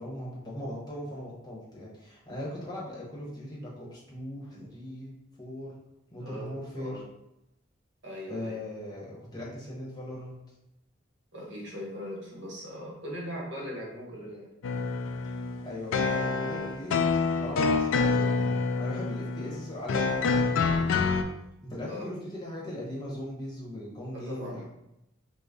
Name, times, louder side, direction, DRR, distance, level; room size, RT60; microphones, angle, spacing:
voice 1, 0.0-5.7 6.1-7.0 8.3-10.4 15.2-21.1 21.6-24.6, left 1 dB, 20° left, -6 dB, 0.9 m, -39 dB
voice 2, 6.2-7.0 8.0-8.6 11.3-14.5 21.9-22.1 24.1-24.6, equal, 65° right, -4 dB, 1.1 m, -39 dB
sound 1, 14.6-21.2, left 4 dB, 80° left, 0.3 m, -27 dB
3.8 x 2.0 x 3.6 m, 0.86 s
head